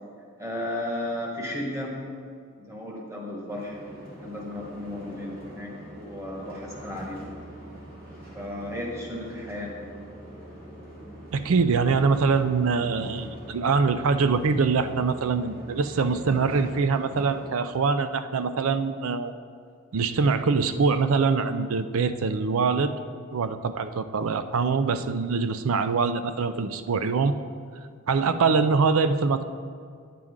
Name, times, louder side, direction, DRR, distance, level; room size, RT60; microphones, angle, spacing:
voice 1, 0.4-1.9 2.6-3.8 4.2-7.3 8.3-9.7, left 1 dB, 15° right, -3 dB, 1.5 m, -34 dB
sound 1, 3.5-17.5, equal, 45° right, 2.1 m, -43 dB
voice 2, 11.3-19.3 19.9-22.9 23.3-27.3 28.1-29.5, right 4 dB, 65° right, 11 dB, 0.4 m, -24 dB
9.8 x 7.6 x 3.7 m, 2.2 s
head